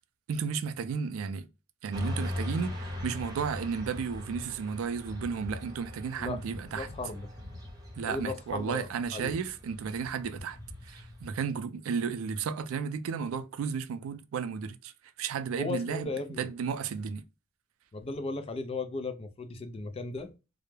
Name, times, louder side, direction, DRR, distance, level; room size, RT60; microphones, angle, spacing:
voice 1, 0.3-1.5 1.8-6.9 8.0-10.6 10.9-14.9 15.2-16.1 16.4-17.2, right 6 dB, 75° right, 0.3 m, -33 dB
Motorcycle / Traffic noise roadway noise, 1.9-11.3, left 1 dB, 20° right, 0.7 m, -40 dB
voice 2, 6.7-7.3 8.1-9.4 15.5-16.5 17.9-20.3, left 3 dB, 30° left, 0.4 m, -36 dB
2.2 x 2.0 x 3.0 m
head